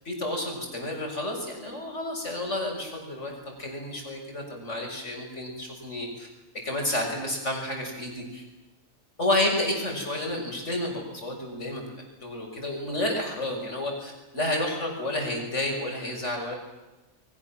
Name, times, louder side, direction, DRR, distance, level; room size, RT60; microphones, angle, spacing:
voice 1, 0.1-3.3 3.6-6.3 6.6-8.4 9.2-11.8 12.2-16.6, left 1 dB, 55° left, 2 dB, 7.2 m, -30 dB
29.0 x 23.5 x 7.5 m, 1.1 s
omnidirectional pair, 1.5 m